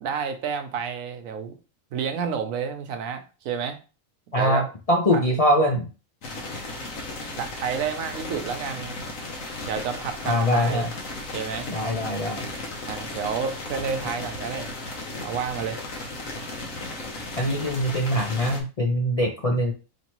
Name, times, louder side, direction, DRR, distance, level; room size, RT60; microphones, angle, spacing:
voice 1, 0.0-1.6 1.9-3.8 4.3-4.6 5.1-5.2 7.3-9.0 9.6-10.9 11.3-11.7 12.8-14.7 15.2-15.8, right 6 dB, 80° right, 8 dB, 1.1 m, -30 dB
voice 2, 4.3-5.9 10.2-10.9 11.7-12.5 17.4-19.7, equal, 45° left, 0 dB, 0.4 m, -23 dB
sound 1, 6.2-18.6, left 2 dB, 75° left, 1.3 m, -35 dB
4.6 x 2.9 x 3.0 m, 0.33 s
omnidirectional pair, 1.4 m